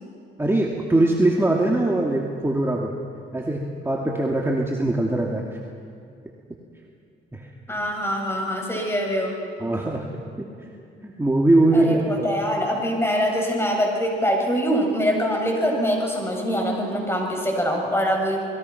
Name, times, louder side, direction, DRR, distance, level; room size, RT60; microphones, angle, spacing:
voice 1, 0.4-2.9 3.3-5.6 7.3-7.5 9.6-10.1 10.4-10.7 11.0-12.3, right 2 dB, 10° right, -1 dB, 2.6 m, -22 dB
voice 2, 7.7-9.4 11.7-18.4, equal, 10° left, 0 dB, 7.5 m, -24 dB
30.0 x 21.5 x 6.0 m, 2.5 s
cardioid pair, 90°, 20 cm